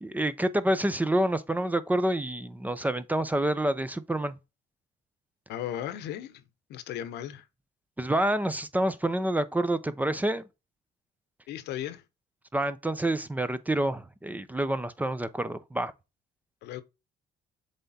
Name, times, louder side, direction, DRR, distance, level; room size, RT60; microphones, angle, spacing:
voice 1, 0.0-4.4 8.0-10.4 12.5-15.9, right 1 dB, 10° right, 0.5 m, -28 dB
voice 2, 5.5-6.4 6.7-7.5 11.5-12.0 16.6-16.8, left 11 dB, 80° left, 0.9 m, -36 dB
7.6 x 3.5 x 4.1 m
cardioid pair, 110°, 17 cm